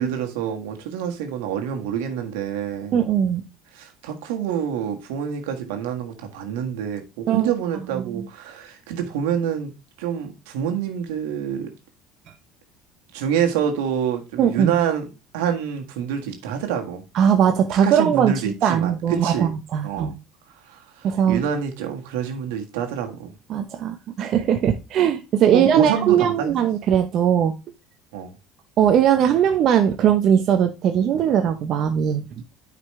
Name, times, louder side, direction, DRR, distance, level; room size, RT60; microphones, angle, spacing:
voice 1, 0.0-2.9 3.7-9.7 10.0-11.7 13.1-17.0 17.8-19.5 19.8-20.1 20.7-23.3 25.5-26.5 28.1-28.3, right 8 dB, 85° right, 1.7 m, -27 dB
voice 2, 2.9-3.4 7.3-7.5 8.0-8.2 14.4-14.7 17.1-20.1 21.0-21.4 23.5-27.5 28.8-32.3, right 9 dB, 55° right, 0.9 m, -20 dB
9.4 x 5.1 x 3.2 m
supercardioid pair, 90°, 0 cm